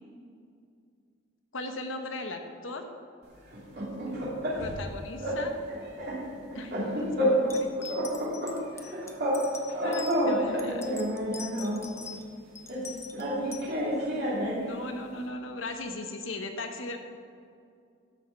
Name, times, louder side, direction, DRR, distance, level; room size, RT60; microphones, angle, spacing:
voice 1, 1.5-2.9 4.6-5.6 6.5-8.0 9.8-11.0 14.6-17.0, left 2 dB, 70° left, 5 dB, 1.1 m, -38 dB
sound 1, 3.5-4.9 5.2-5.4 5.7-7.6 7.9-9.4 9.7-11.9 12.7-14.7, equal, 55° right, 2.8 m, -29 dB
sound 2, 7.5-10.2 10.6-12.2 12.5-13.6, left 6 dB, 15° left, 0.8 m, -43 dB
13.0 x 6.4 x 5.8 m, 2.4 s
head